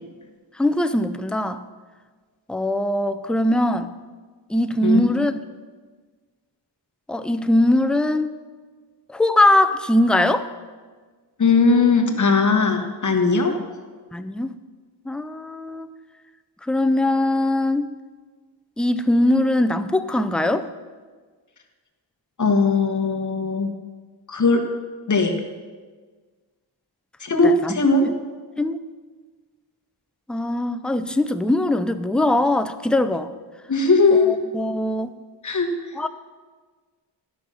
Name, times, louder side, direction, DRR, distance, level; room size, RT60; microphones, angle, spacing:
voice 1, 0.6-1.6 2.5-3.9 4.5-5.4 7.1-8.3 9.1-10.5 14.1-14.5 15.1-15.9 16.7-17.9 18.8-20.7 27.4-27.8 28.6-28.8 30.3-33.3 34.1-35.1 36.0-36.1, left 1 dB, ahead, 10 dB, 0.4 m, -21 dB
voice 2, 11.4-13.5 22.4-23.7 24.3-24.6 25.1-25.3 27.2-28.1 33.7-34.4 35.4-35.7, left 4 dB, 40° left, 4 dB, 1.4 m, -18 dB
12.0 x 5.7 x 6.2 m, 1.4 s
wide cardioid pair, 95°, 43 cm